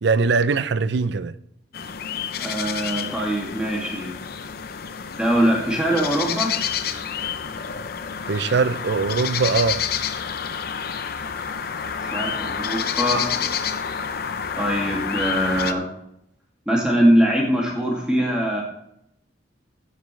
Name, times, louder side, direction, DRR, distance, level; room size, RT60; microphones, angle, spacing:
voice 1, 0.0-1.3 8.3-9.8, right 4 dB, 70° right, 0.5 m, -21 dB
sound 1, 1.7-15.7, left 7 dB, 55° left, 0.6 m, -29 dB
voice 2, 2.4-4.1 5.2-6.5 12.0-13.2 14.6-15.8 16.7-18.6, equal, 5° right, 2.4 m, -22 dB
14.5 x 8.4 x 3.3 m
head